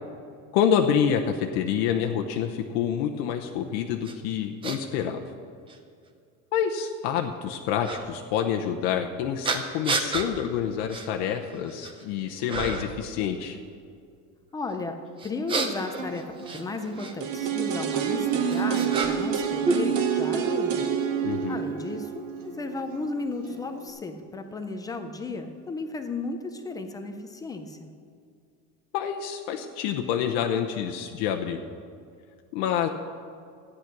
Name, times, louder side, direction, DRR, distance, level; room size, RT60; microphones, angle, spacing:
voice 1, 0.5-5.2 6.5-13.6 21.2-21.6 28.9-31.6 32.5-32.9, left 8 dB, 65° left, 4 dB, 0.9 m, -27 dB
sound 1, 4.0-4.1 4.6-4.8 5.7-5.8 7.8-8.0 9.4-10.3 10.9-11.1 11.5-12.0 12.5-13.0 15.2-17.1 18.1-19.4 19.6-20.5, right 3 dB, 15° right, 0.7 m, -30 dB
voice 2, 14.5-15.0 15.2-16.3 16.5-20.9 21.5-27.9, left 3 dB, 10° left, 5 dB, 0.4 m, -34 dB
Acoustic guitar, 15.9-23.9, right 4 dB, 80° right, 2.3 m, -45 dB
sound 2, 17.2-23.1 23.4-23.5, right 8 dB, 40° right, 0.9 m, -27 dB
13.5 x 9.9 x 6.0 m, 2.3 s
cardioid pair, 175°, 36 cm